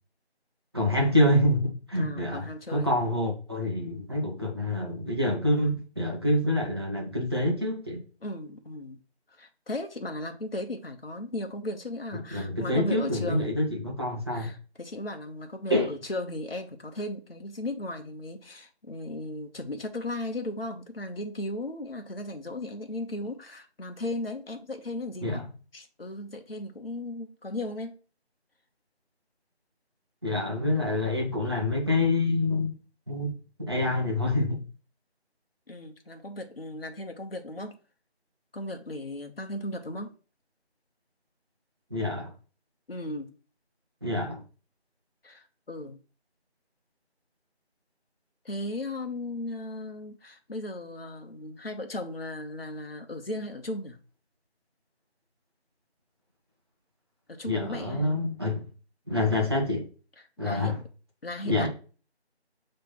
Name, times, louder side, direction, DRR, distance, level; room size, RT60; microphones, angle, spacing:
voice 1, 0.7-8.0 12.3-14.5 15.7-15.9 25.2-25.5 30.2-32.8 33.1-34.6 41.9-42.3 44.0-44.4 57.4-58.6 59.1-59.9 60.4-60.8 61.4-61.7, left 1 dB, 25° right, 1.1 m, -27 dB
voice 2, 1.9-2.9 8.2-9.0 9.4-13.6 14.3-25.4 25.7-28.0 35.7-37.8 38.5-40.1 42.9-43.3 45.2-46.0 48.4-54.0 57.3-58.4 60.4-60.8 61.2-61.7, left 1 dB, 60° left, 1.1 m, -36 dB
5.8 x 3.3 x 5.5 m
figure-of-eight pair, 170°, 33 cm